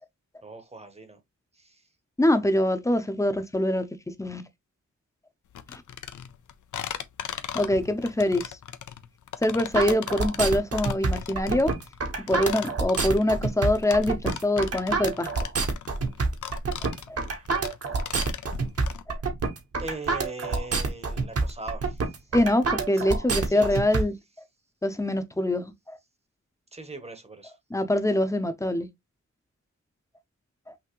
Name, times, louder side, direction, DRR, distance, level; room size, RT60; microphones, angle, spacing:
voice 1, 0.4-1.2 1.6-1.8 19.8-22.0 22.9-23.0 23.5-23.8 26.7-27.6, right 2 dB, 20° right, 0.9 m, -40 dB
voice 2, 2.2-3.8 4.2-4.4 5.7-5.8 7.5-8.5 9.4-11.7 12.3-15.3 17.1-17.2 22.3-24.1 24.8-26.0 27.7-28.9, left 1 dB, 10° left, 0.6 m, -24 dB
sound 1, 5.5-19.0, left 9 dB, 85° left, 0.6 m, -38 dB
sound 2, 9.7-24.0, right 4 dB, 55° right, 1.1 m, -27 dB
5.8 x 2.8 x 3.0 m
wide cardioid pair, 170°, 30 cm